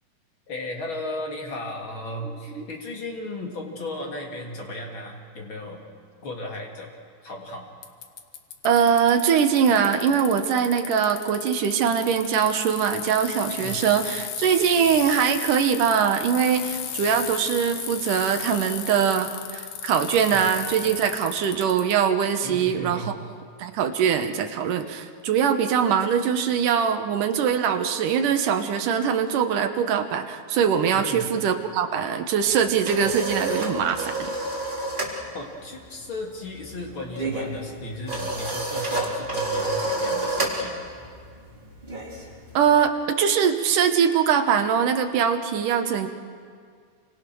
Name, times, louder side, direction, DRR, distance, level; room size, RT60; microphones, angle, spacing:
voice 1, 0.5-5.9 6.2-6.9 7.2-7.7 13.6-13.8 20.3-20.5 22.4-23.1 30.9-31.3 35.3-40.9, left 2 dB, 35° left, 0 dB, 3.4 m, -35 dB
Bicycle, 7.8-21.9, left 9 dB, 65° left, 2.8 m, -35 dB
voice 2, 8.6-23.1 23.6-34.3 42.5-46.1, right 7 dB, 65° right, 6 dB, 2.4 m, -22 dB
sound 1, 32.5-35.2 35.4-35.7 36.0-42.7, right 2 dB, 10° right, 3.7 m, -29 dB
29.0 x 25.5 x 6.3 m, 2.1 s
omnidirectional pair, 4.6 m